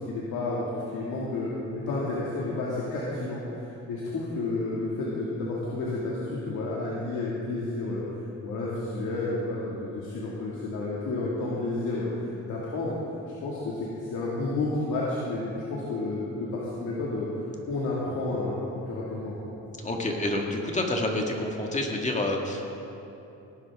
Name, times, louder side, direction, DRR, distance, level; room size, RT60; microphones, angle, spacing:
voice 1, 0.0-8.0 8.4-13.0 13.4-17.3 17.7-19.4, left 2 dB, 80° left, -6 dB, 2.2 m, -31 dB
voice 2, 19.8-22.7, left 1 dB, 25° left, 1 dB, 1.9 m, -28 dB
18.5 x 10.5 x 3.6 m, 2.8 s
cardioid pair, 90°, 30 cm